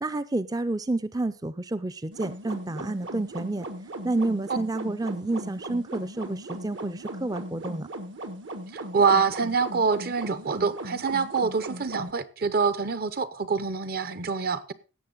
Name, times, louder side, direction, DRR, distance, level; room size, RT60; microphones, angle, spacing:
voice 1, 0.0-3.7 4.0-7.9, right 2 dB, 20° right, 0.5 m, -29 dB
sound 1, 2.1-12.1, right 1 dB, 75° right, 1.5 m, -38 dB
voice 2, 8.7-14.7, right 5 dB, 50° right, 0.8 m, -25 dB
17.0 x 7.0 x 3.9 m
head